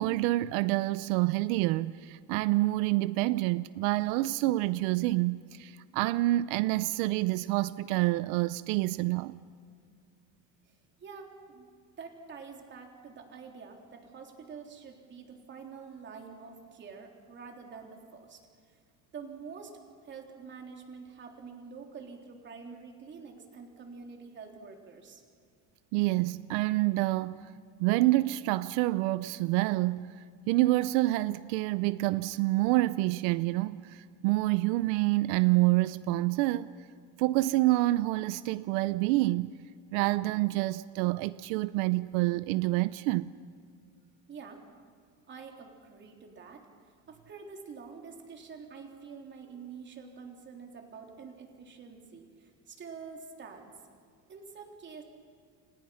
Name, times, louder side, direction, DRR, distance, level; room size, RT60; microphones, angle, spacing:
voice 1, 0.0-9.4 25.9-27.5 27.8-30.2 30.5-36.7 37.2-39.6 39.9-43.3, right 18 dB, 90° right, 0.7 m, -27 dB
voice 2, 11.0-11.7 12.0-18.5 19.1-25.2 44.3-44.6 45.3-46.7 47.1-53.8 54.3-55.0, right 5 dB, 30° right, 3.5 m, -47 dB
30.0 x 26.5 x 5.8 m
cardioid pair, 165°, 39 cm